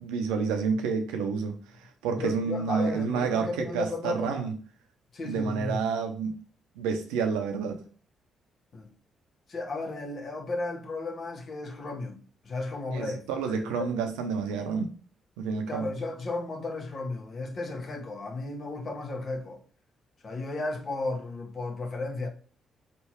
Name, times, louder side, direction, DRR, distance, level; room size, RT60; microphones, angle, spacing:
voice 1, 0.0-1.6 2.0-4.5 5.2-6.4 6.8-7.8 12.9-14.9 15.4-15.9, right 5 dB, 90° right, 0.7 m, -29 dB
voice 2, 2.1-4.5 5.1-5.8 8.7-8.9 9.5-12.2 12.4-14.0 15.7-19.6 20.2-22.3, left 2 dB, 55° left, 1.3 m, -34 dB
4.4 x 3.4 x 3.0 m
supercardioid pair, 55°, 0 cm